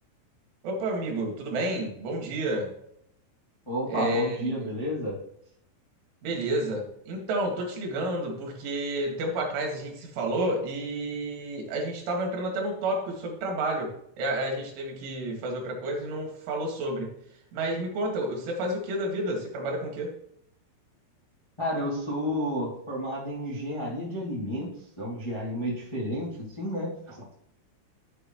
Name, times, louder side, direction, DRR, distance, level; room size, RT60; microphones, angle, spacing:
voice 1, 0.6-2.7 3.9-4.5 6.2-17.2 17.5-20.1, right 1 dB, 75° right, 1 dB, 4.5 m, -30 dB
voice 2, 3.6-5.2 21.6-24.7 25.0-27.3, equal, 35° left, -5 dB, 0.4 m, -31 dB
12.5 x 7.7 x 3.1 m, 0.73 s
omnidirectional pair, 5.6 m